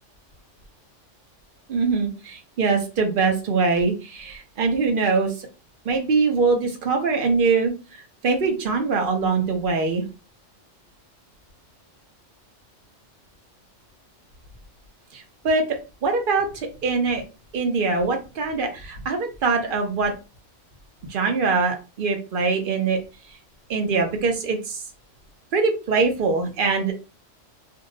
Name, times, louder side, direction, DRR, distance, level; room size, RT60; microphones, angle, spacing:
voice 1, 1.7-5.3 5.9-7.7 8.2-10.0 15.1-15.6 16.0-16.5 16.8-17.2 17.5-20.1 21.1-23.0 23.7-24.8 25.5-26.9, right 4 dB, 50° right, 4 dB, 0.8 m, -22 dB
2.6 x 2.0 x 3.7 m, 0.31 s
omnidirectional pair, 1.3 m